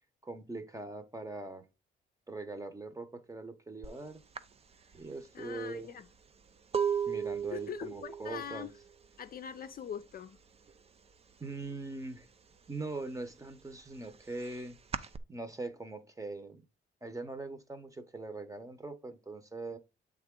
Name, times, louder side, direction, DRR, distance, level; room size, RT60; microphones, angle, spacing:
voice 1, 0.2-1.6 2.3-4.2 4.9-5.9 7.1-8.7 11.4-12.3 12.7-16.6 17.0-19.8, right 3 dB, 15° right, 1.0 m, -42 dB
sound 1, 3.8-4.0 4.3-10.0 10.3-10.8 11.1-12.2 12.6-15.2, right 7 dB, 30° right, 0.5 m, -37 dB
voice 2, 5.3-6.1 7.5-8.7 9.2-10.4, left 9 dB, 45° left, 0.5 m, -42 dB
7.7 x 3.6 x 3.8 m
cardioid pair, 90°, 20 cm